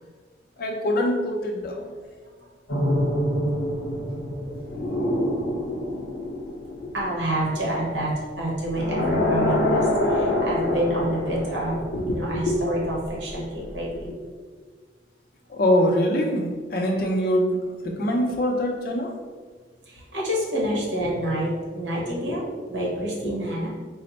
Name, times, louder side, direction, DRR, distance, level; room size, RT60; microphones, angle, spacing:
voice 1, 0.6-1.8 4.8-4.9 6.8-6.9 11.9-12.6 15.5-19.1 22.3-22.4 23.2-23.3, left 1 dB, 50° left, 1 dB, 0.5 m, -24 dB
sound 1, 2.7-7.8 8.7-12.6 12.9-13.1, left 1 dB, 85° left, 0.9 m, -26 dB
voice 2, 4.2-4.5 5.0-5.1 6.9-11.8 12.1-14.1 19.9-23.7, right 1 dB, 70° right, -4 dB, 1.1 m, -28 dB
4.3 x 2.0 x 4.0 m, 1.5 s
head